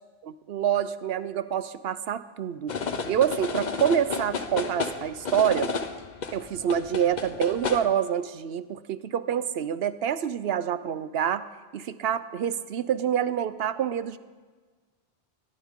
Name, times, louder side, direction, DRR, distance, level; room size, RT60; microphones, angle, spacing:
voice 1, 0.2-2.7 3.1-5.7 6.3-11.5 11.7-14.2, right 9 dB, 75° right, 14 dB, 0.9 m, -27 dB
sound 1, 2.7-7.8, left 5 dB, 50° left, 1.0 m, -32 dB
21.5 x 16.0 x 3.7 m, 1.4 s
omnidirectional pair, 1.0 m